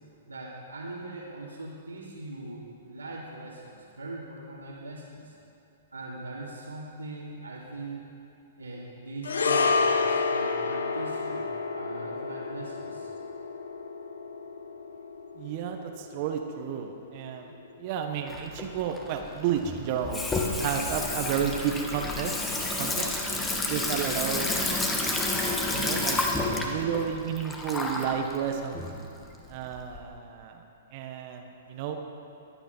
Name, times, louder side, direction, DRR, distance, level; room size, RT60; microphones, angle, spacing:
voice 1, 0.3-5.3 5.9-8.1 8.6-13.1, right 2 dB, 90° right, -9 dB, 2.7 m, -41 dB
sound 1, 9.2-17.7 18.0-18.2, left 4 dB, 70° left, 1.1 m, -30 dB
voice 2, 15.4-17.5 17.8-20.2 20.6-22.4 22.8-23.1 23.7-24.5 25.7-26.2 26.5-28.8 29.5-30.6 30.9-32.0, right 8 dB, 45° right, 4 dB, 1.4 m, -31 dB
Water tap faucet / Sink (filling or washing), 18.3-30.0, left 2 dB, 10° left, 1.7 m, -30 dB
21.5 x 9.9 x 5.7 m, 2.6 s
figure-of-eight pair, 115°, 0 cm